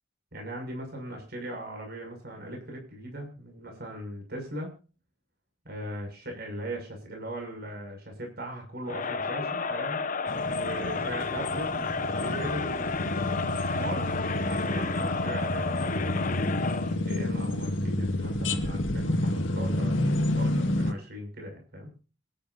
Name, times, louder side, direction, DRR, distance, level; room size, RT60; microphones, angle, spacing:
voice 1, 0.3-4.7 5.6-10.0 10.5-14.1 14.5-16.3 17.0-21.9, right 1 dB, 55° right, 3 dB, 6.2 m, -39 dB
Crowd, 8.9-17.0, left 4 dB, 45° left, 0.9 m, -31 dB
sound 1, 10.3-20.9, left 1 dB, 75° left, 1.9 m, -30 dB
26.5 x 10.5 x 2.6 m, 0.36 s
head